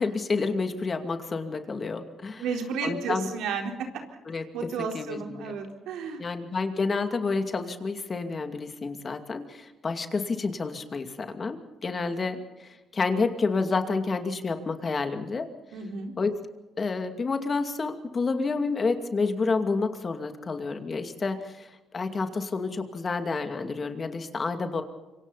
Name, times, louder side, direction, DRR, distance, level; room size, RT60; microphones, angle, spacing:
voice 1, 0.0-2.4 2.8-3.3 4.3-4.4 4.9-5.5 6.2-15.5 16.2-16.3 16.8-24.8, left 4 dB, 35° left, 7 dB, 2.4 m, -29 dB
voice 2, 2.4-3.9 4.5-6.2 15.7-16.1, right 5 dB, 90° right, 2 dB, 4.1 m, -32 dB
26.5 x 24.0 x 4.2 m, 1.1 s
cardioid pair, 90°, 0 cm